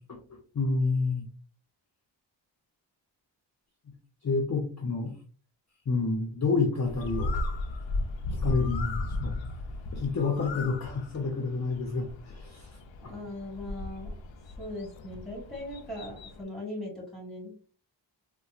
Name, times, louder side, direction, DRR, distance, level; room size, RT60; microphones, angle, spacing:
voice 1, 0.5-1.3 4.2-5.2 5.9-7.4 8.4-9.4 9.9-12.7 13.0-13.1, left 4 dB, 40° left, 1 dB, 0.6 m, -29 dB
Bird, 6.9-16.4, left 2 dB, 85° left, 0.5 m, -36 dB
voice 2, 13.0-14.2 14.6-17.5, left 1 dB, ahead, -2 dB, 1.6 m, -39 dB
4.1 x 2.2 x 2.4 m, 0.40 s
wide cardioid pair, 110°, 45 cm